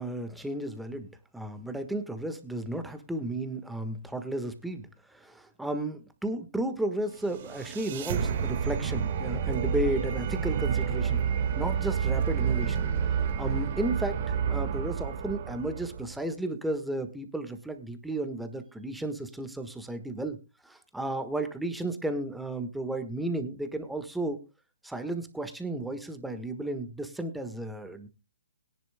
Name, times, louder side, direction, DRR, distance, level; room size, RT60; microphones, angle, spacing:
voice 1, 0.0-11.2 11.5-12.9 13.4-20.4 20.6-24.4 24.8-28.1, right 1 dB, 5° right, 8 dB, 1.4 m, -33 dB
sound 1, 7.1-16.2, right 7 dB, 45° right, 1.6 m, -29 dB
21.5 x 10.5 x 2.2 m, 0.28 s
figure-of-eight pair, 135°, 0 cm